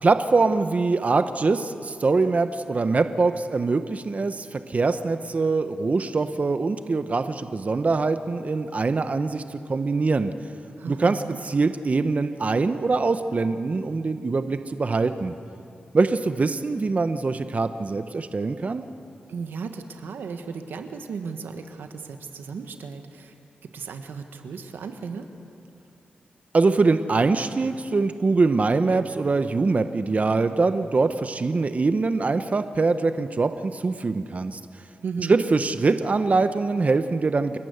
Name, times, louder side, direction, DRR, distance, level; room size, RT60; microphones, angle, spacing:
voice 1, 0.0-10.3 10.9-15.3 15.9-18.8 26.5-34.6 35.3-37.6, right 3 dB, 45° right, 9 dB, 0.8 m, -23 dB
voice 2, 10.8-11.4 19.3-23.4 23.7-25.3 35.0-35.4, right 5 dB, 90° right, 7 dB, 1.4 m, -35 dB
29.5 x 12.0 x 8.0 m, 2.6 s
cardioid pair, 60°, 3 cm